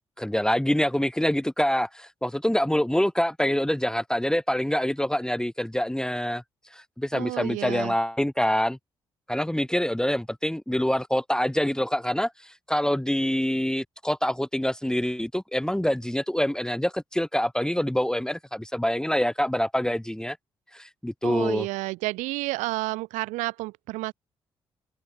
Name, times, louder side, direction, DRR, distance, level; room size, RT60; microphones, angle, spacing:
voice 1, 0.2-6.4 6.7-8.8 9.3-20.4 20.7-21.7, equal, 5° left, 1.5 m, -26 dB
voice 2, 7.1-7.9 21.2-24.1, right 21 dB, 80° right, 6.7 m, -30 dB
hypercardioid pair, 40°, 13 cm